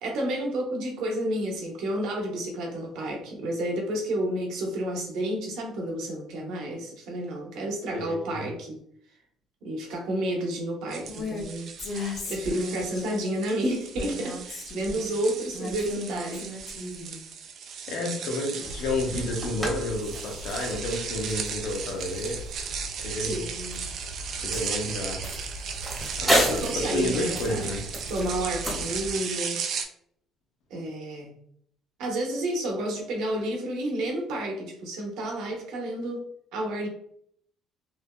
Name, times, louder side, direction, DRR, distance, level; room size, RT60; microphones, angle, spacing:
voice 1, 0.0-8.8 9.6-11.7 12.2-16.8 23.1-23.9 26.2-27.7 28.1-29.6 30.7-31.3 32.0-36.9, right 1 dB, 80° right, 0 dB, 1.0 m, -31 dB
voice 2, 7.9-8.4 17.9-22.4 23.0-23.5 24.4-25.3 26.2-27.9, left 2 dB, 75° left, 0 dB, 0.9 m, -31 dB
sound 1, 10.9-29.9, right 6 dB, 65° right, 0.4 m, -36 dB
Female speech woman speaking, 11.1-11.4 11.8-13.0 13.9-15.1 15.5-17.2, left 2 dB, 55° left, 1.3 m, -35 dB
sound 2, 18.6-29.1, equal, 10° right, 1.3 m, -33 dB
3.3 x 2.7 x 2.2 m, 0.67 s
cardioid pair, 90°, 0 cm